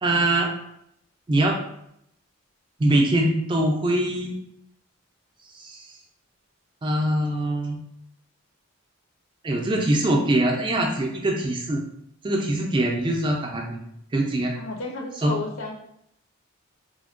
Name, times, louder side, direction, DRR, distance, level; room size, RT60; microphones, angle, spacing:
voice 1, 0.0-0.5 1.3-1.6 2.8-4.4 5.5-5.9 6.8-7.8 9.4-11.8 12.2-13.8 14.1-14.5 15.2-15.3, right 1 dB, 25° right, 0 dB, 0.3 m, -23 dB
voice 2, 14.6-15.7, left 3 dB, 75° left, 2 dB, 0.6 m, -32 dB
3.3 x 2.1 x 2.4 m, 0.74 s
head